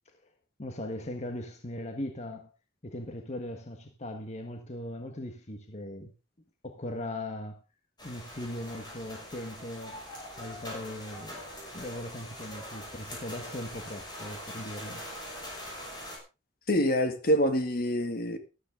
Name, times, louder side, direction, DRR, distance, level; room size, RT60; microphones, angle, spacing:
voice 1, 0.6-2.5 2.8-6.1 6.6-7.6 8.0-10.0 10.4-11.4 11.7-15.0, left 1 dB, 40° left, 1.5 m, -39 dB
sound 1, 8.0-16.2, left 1 dB, 25° left, 6.0 m, -43 dB
voice 2, 16.7-18.4, equal, 55° left, 2.0 m, -26 dB
13.5 x 13.0 x 3.7 m
head